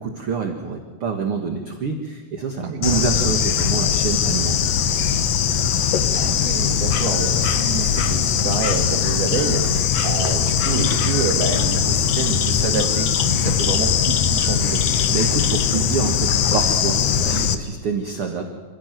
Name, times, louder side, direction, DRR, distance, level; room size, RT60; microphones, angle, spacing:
voice 1, 0.0-4.7 15.1-18.5, right 5 dB, 45° right, 4 dB, 2.0 m, -26 dB
voice 2, 2.6-3.1 5.7-5.8 6.2-14.8, right 6 dB, 75° right, 3 dB, 4.2 m, -28 dB
Bird / Insect, 2.8-17.6, left 8 dB, 65° left, 1.6 m, -20 dB
27.0 x 16.5 x 9.3 m, 1.4 s
omnidirectional pair, 4.4 m